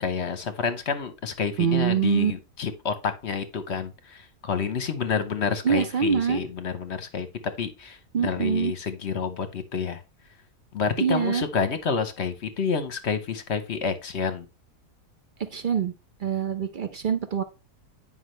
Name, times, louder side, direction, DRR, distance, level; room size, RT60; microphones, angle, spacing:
voice 1, 0.0-7.3 7.6-10.0 10.7-14.5, left 6 dB, 50° left, 10 dB, 1.0 m, -29 dB
voice 2, 1.6-2.3 5.6-6.4 8.1-8.7 11.0-11.4 15.4-15.9 16.2-17.4, right 7 dB, 60° right, 9 dB, 0.5 m, -24 dB
9.5 x 5.5 x 3.2 m, 0.29 s
omnidirectional pair, 1.7 m